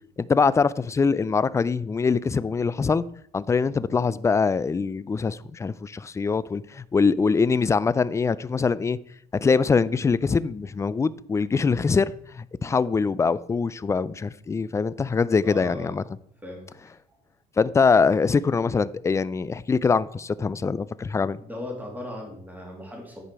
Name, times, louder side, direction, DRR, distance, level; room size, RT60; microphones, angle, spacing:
voice 1, 0.2-3.0 3.3-9.0 9.4-16.0 17.6-21.4, left 5 dB, 15° left, 0.3 m, -23 dB
voice 2, 15.4-15.9 16.4-16.6 21.4-23.2, left 1 dB, 10° right, 2.8 m, -37 dB
10.0 x 5.0 x 4.7 m
cardioid pair, 110°, 17 cm